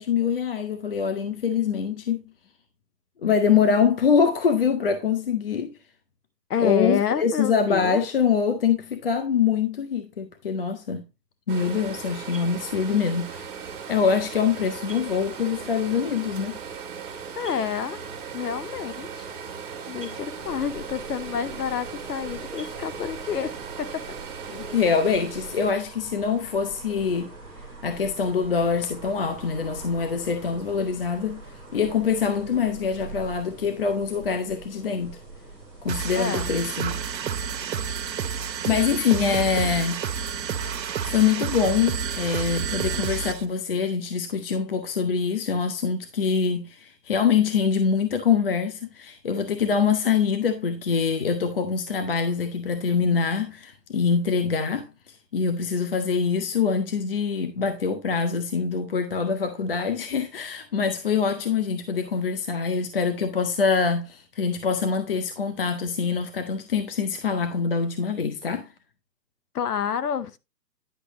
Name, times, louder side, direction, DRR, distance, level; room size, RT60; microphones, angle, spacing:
voice 1, 0.0-2.2 3.2-5.7 6.6-11.0 11.5-13.5 13.9-16.6 24.5-27.3 27.8-31.4 31.7-35.2 35.8-37.0 38.7-40.3 41.0-68.7, left 6 dB, 35° left, 0.6 m, -24 dB
voice 2, 6.5-8.0 17.4-18.0 18.3-19.3 19.9-24.0 36.1-36.5 38.6-39.3 69.5-70.4, left 8 dB, 65° left, 0.9 m, -29 dB
sound 1, 11.5-25.7, right 6 dB, 10° right, 1.6 m, -38 dB
sound 2, 20.4-36.0, right 3 dB, 10° left, 1.1 m, -43 dB
sound 3, 35.9-43.4, right 7 dB, 90° right, 0.9 m, -30 dB
10.0 x 6.0 x 3.0 m
hypercardioid pair, 160°, 50 cm